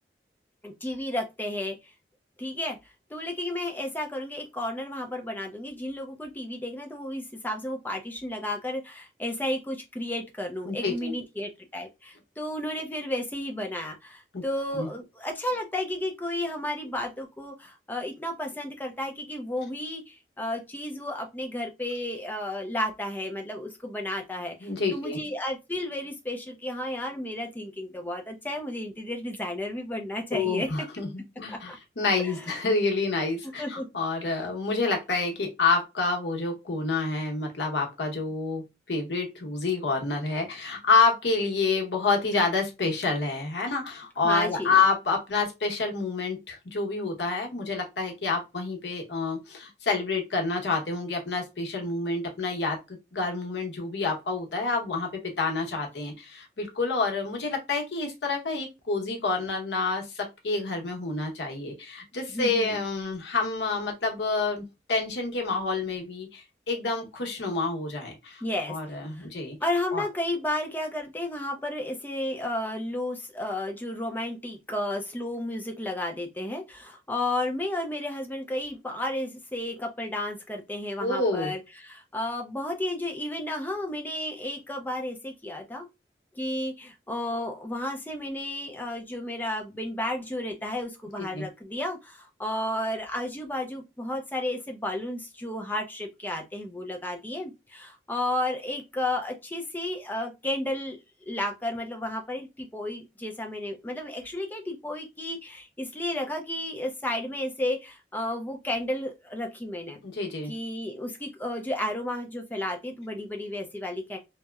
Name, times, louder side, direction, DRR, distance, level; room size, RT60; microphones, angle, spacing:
voice 1, 0.6-1.9 2.4-2.8 3.1-30.7 31.5-31.8 32.0-32.5 33.6-33.9 44.2-44.8 62.3-62.8 68.4-69.3 69.6-85.9 86.3-101.0 101.3-110.0 110.5-114.2, left 1 dB, 10° left, 0.4 m, -32 dB
voice 2, 10.6-11.1 14.3-14.4 14.8-14.9 24.6-25.2 30.3-68.4 68.7-69.6 69.9-70.0 81.0-81.5 91.2-91.5 110.0-110.5, left 3 dB, 85° left, 0.8 m, -28 dB
2.8 x 2.0 x 2.3 m
head